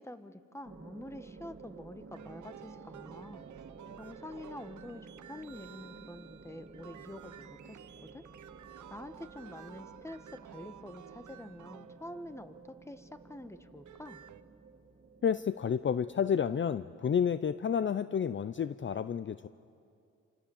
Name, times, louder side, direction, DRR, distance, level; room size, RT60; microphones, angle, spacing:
voice 1, 0.0-3.5 4.0-7.8 8.1-8.2 8.9-14.2, left 1 dB, 10° left, 10 dB, 1.3 m, -47 dB
sound 1, 0.7-17.7, right 4 dB, 40° right, 1.8 m, -53 dB
sound 2, 2.1-12.6 13.7-14.4, right 10 dB, 75° right, 0.8 m, -53 dB
voice 2, 15.2-19.5, left 7 dB, 40° left, 14 dB, 0.5 m, -30 dB
28.0 x 26.0 x 7.1 m, 2.5 s
cardioid pair, 75°, 30 cm